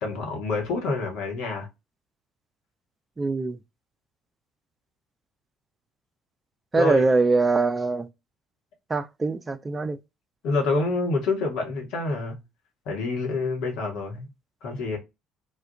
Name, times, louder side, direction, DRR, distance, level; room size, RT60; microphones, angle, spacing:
voice 1, 0.0-1.7 6.7-7.0 10.4-12.4 12.9-14.3 14.6-15.0, left 3 dB, 60° left, 0.9 m, -27 dB
voice 2, 3.2-3.6 6.7-8.1 8.9-10.0, right 3 dB, 25° right, 0.4 m, -23 dB
2.3 x 2.2 x 2.6 m
figure-of-eight pair, 50°, 0 cm